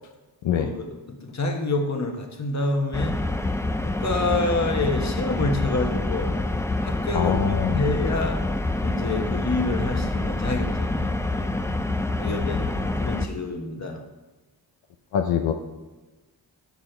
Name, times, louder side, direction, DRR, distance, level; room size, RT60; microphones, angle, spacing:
voice 1, 0.6-0.9 1.2-3.1 3.8-6.3 6.8-7.3 7.7-8.4 8.8-11.6 12.2-14.0, left 2 dB, 35° left, 4 dB, 1.3 m, -27 dB
sound 1, 2.9-13.3, left 2 dB, 5° left, 0.5 m, -26 dB
voice 2, 7.1-7.8 12.2-12.9 15.1-15.5, left 8 dB, 80° left, 5 dB, 0.7 m, -25 dB
7.1 x 6.2 x 4.4 m, 1.2 s
cardioid pair, 55°, 45 cm